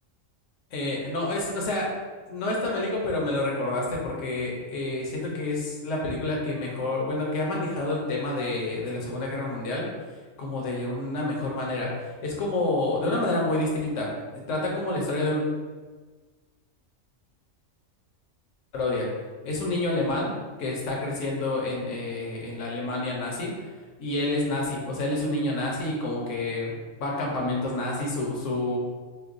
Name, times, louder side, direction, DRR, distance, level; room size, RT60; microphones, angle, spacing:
voice 1, 0.7-1.9 2.3-9.9 10.4-14.1 14.5-15.4 18.7-19.1 19.4-20.3 20.6-23.7 24.0-26.7 27.0-28.8, left 2 dB, 70° left, -2 dB, 1.2 m, -28 dB
6.7 x 2.3 x 2.6 m, 1.4 s
omnidirectional pair, 1.3 m